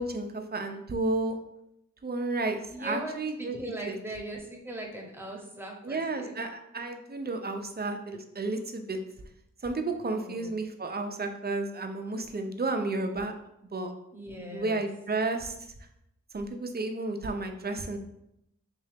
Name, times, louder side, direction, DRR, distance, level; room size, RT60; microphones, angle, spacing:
voice 1, 0.0-1.4 2.0-4.0 5.8-9.0 9.6-13.3 13.7-13.9 14.4-15.5 16.3-18.0, right 2 dB, 30° right, 5 dB, 0.6 m, -32 dB
voice 2, 2.7-6.3 10.1-10.5 14.1-14.9, right 1 dB, 5° right, -1 dB, 1.1 m, -39 dB
3.7 x 2.7 x 3.5 m, 0.81 s
cardioid pair, 40°, 32 cm